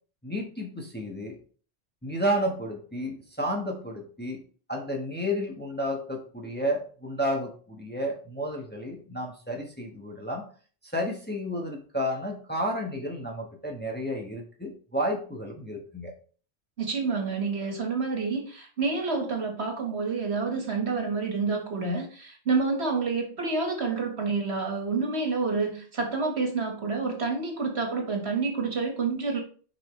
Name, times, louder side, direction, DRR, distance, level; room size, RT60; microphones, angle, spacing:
voice 1, 0.2-1.4 2.0-4.4 4.7-10.4 10.9-16.1, equal, 10° left, 0 dB, 1.1 m, -31 dB
voice 2, 16.8-29.4, right 4 dB, 70° right, 2 dB, 1.8 m, -28 dB
7.1 x 5.4 x 3.1 m, 0.41 s
omnidirectional pair, 1.1 m